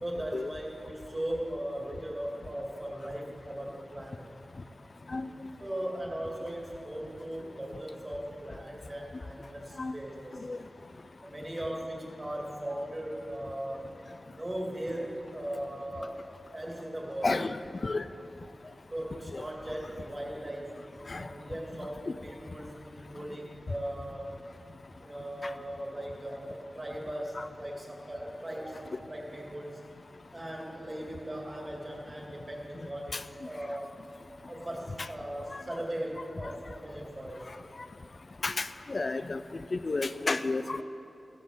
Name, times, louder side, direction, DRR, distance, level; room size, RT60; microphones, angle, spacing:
voice 1, 0.0-4.3 5.6-10.4 11.2-13.9 14.3-16.2 16.5-17.4 18.9-20.8 21.2-24.4 25.0-29.8 30.3-33.9 34.5-37.4, right 1 dB, 25° right, -2 dB, 2.4 m, -38 dB
voice 2, 17.2-17.6 17.8-18.0 19.3-19.4 21.1-21.2 22.1-22.2 27.4-27.5 33.1-33.2 35.5-35.6 38.4-39.4 39.7-40.8, left 3 dB, 45° left, 12 dB, 0.4 m, -31 dB
15.0 x 13.5 x 3.7 m, 2.9 s
wide cardioid pair, 85°, 0 cm